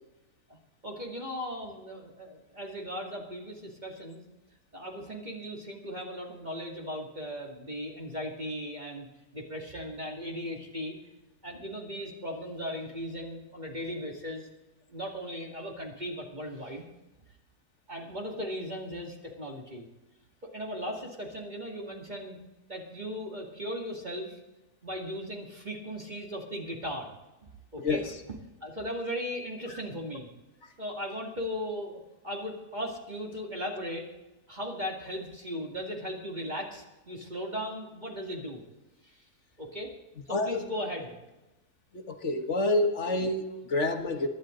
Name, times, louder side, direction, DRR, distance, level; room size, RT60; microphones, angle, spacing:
voice 1, 0.8-4.2 4.7-9.1 9.3-10.9 11.4-14.5 14.9-16.9 17.9-19.9 20.5-22.4 22.7-24.4 24.8-27.1 27.7-28.1 28.6-30.3 30.8-32.0 32.2-34.0 34.5-38.6 39.0-39.2 39.6-39.9 40.3-41.2, equal, 30° right, -1 dB, 2.4 m, -37 dB
voice 2, 27.8-28.1 40.3-40.6 41.9-44.3, left 2 dB, 50° left, 6 dB, 1.6 m, -28 dB
24.0 x 11.5 x 3.9 m, 1.0 s
omnidirectional pair, 1.6 m